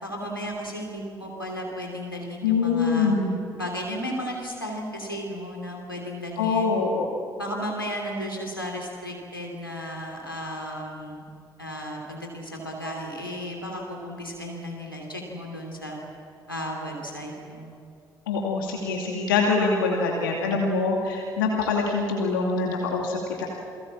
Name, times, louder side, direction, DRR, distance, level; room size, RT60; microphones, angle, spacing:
voice 1, 0.0-3.1 3.6-6.8 7.4-11.2 11.6-16.0 16.5-17.7, equal, 90° left, -1 dB, 3.0 m, -34 dB
voice 2, 2.4-3.4 6.4-7.1 18.3-23.5, left 4 dB, 75° left, -1 dB, 2.6 m, -24 dB
28.5 x 23.0 x 7.5 m, 2.3 s
figure-of-eight pair, 45°, 11 cm